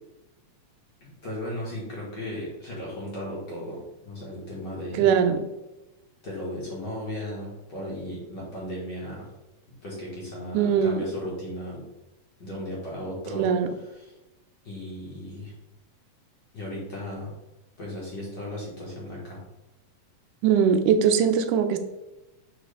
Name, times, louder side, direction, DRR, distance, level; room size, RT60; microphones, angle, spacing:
voice 1, 1.0-5.1 6.2-9.3 9.8-11.8 12.4-13.5 13.8-14.2 14.6-15.5 16.5-17.3 17.8-19.4, left 1 dB, 40° left, -5 dB, 1.8 m, -36 dB
voice 2, 5.0-5.4 10.5-11.1 13.4-13.7 20.4-21.8, right 7 dB, 90° right, 8 dB, 2.2 m, -21 dB
6.2 x 5.2 x 3.4 m, 0.99 s
omnidirectional pair, 3.5 m